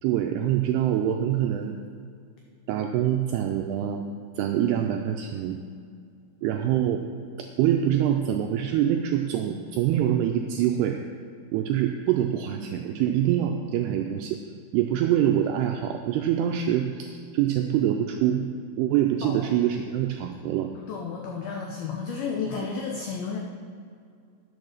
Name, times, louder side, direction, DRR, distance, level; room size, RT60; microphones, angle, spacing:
voice 1, 0.0-1.8 2.7-4.0 4.4-5.6 6.4-7.0 7.4-11.0 11.5-14.4 14.7-18.5 18.8-20.7, right 10 dB, 85° right, 4 dB, 2.3 m, -25 dB
voice 2, 20.8-23.4, left 5 dB, 85° left, 0 dB, 2.1 m, -32 dB
10.5 x 6.7 x 6.4 m, 2.3 s
omnidirectional pair, 5.2 m